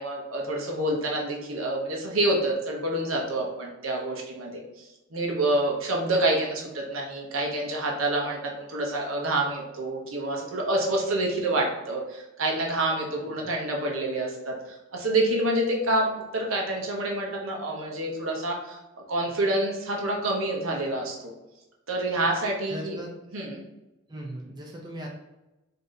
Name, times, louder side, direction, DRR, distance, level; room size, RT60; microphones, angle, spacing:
voice 1, 0.0-18.8 19.1-21.3 21.9-23.0 23.3-23.6, right 1 dB, 85° right, -1 dB, 0.9 m, -27 dB
voice 2, 22.7-23.1 24.1-25.1, right 1 dB, 20° right, -2 dB, 0.6 m, -38 dB
3.8 x 2.8 x 3.9 m, 0.99 s
head